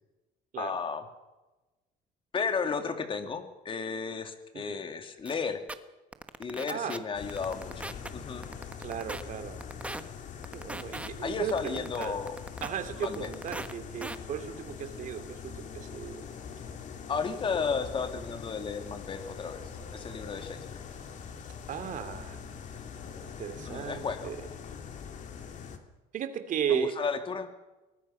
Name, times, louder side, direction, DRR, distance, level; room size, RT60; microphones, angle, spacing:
voice 1, 0.5-1.0 2.3-5.6 6.4-8.5 11.2-12.4 13.0-13.3 17.1-20.8 23.7-24.3 26.7-27.5, left 5 dB, 30° left, 7 dB, 2.4 m, -33 dB
sound 1, 5.3-5.4 5.7-5.8 6.1-7.0 7.3-8.1 8.4-9.2 9.6-10.0 10.4-11.1 11.5-12.7 13.0-13.7 14.0-14.2, right 2 dB, 10° right, 1.2 m, -38 dB
voice 2, 6.7-7.0 8.8-9.6 10.5-12.2 12.6-16.2 21.7-22.4 23.4-24.4 26.1-27.0, right 8 dB, 50° right, 9 dB, 2.7 m, -35 dB
sound 2, 7.1-25.8, left 6 dB, 50° left, 2.6 m, -43 dB
24.0 x 19.5 x 5.7 m, 1.1 s
cardioid pair, 130°, 17 cm